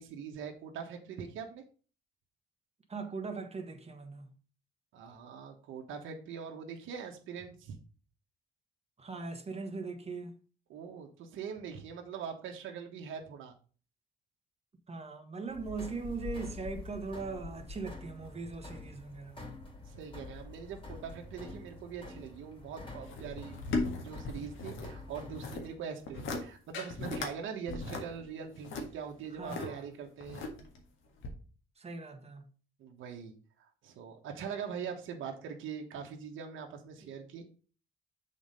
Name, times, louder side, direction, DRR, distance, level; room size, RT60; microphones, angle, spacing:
voice 1, 0.0-1.6 4.9-7.8 10.7-13.6 19.9-30.5 32.8-37.4, right 7 dB, 80° right, 1.3 m, -42 dB
voice 2, 2.9-4.3 9.0-10.4 14.9-19.4 29.4-29.9 31.8-32.4, right 4 dB, 30° right, 1.6 m, -40 dB
sound 1, 15.5-25.7, left 3 dB, 25° left, 2.6 m, -47 dB
sound 2, 23.0-24.9 25.2-25.7 26.0-26.4 26.7-27.3 27.7-29.7 30.2-30.8 31.2-31.3, left 3 dB, 80° left, 1.8 m, -37 dB
7.2 x 4.2 x 5.4 m
cardioid pair, 90°, 20 cm